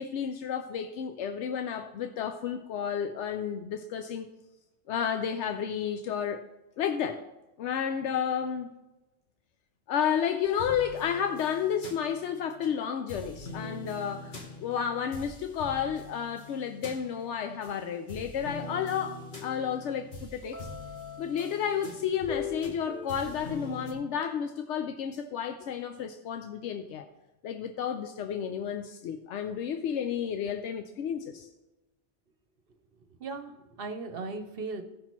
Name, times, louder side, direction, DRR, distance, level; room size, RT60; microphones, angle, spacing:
voice 1, 0.0-4.3 4.9-6.4 6.8-7.2 7.6-8.7 9.9-19.2 19.4-20.7 21.2-27.1 27.4-31.5, left 8 dB, 85° left, 7 dB, 0.9 m, -31 dB
sound 1, 10.4-12.7 13.1-17.7 18.1-23.9, left 3 dB, 45° left, 1.3 m, -42 dB
voice 2, 33.2-34.8, right 3 dB, 60° right, 6 dB, 0.9 m, -37 dB
15.5 x 5.8 x 3.0 m, 1.0 s
omnidirectional pair, 1.2 m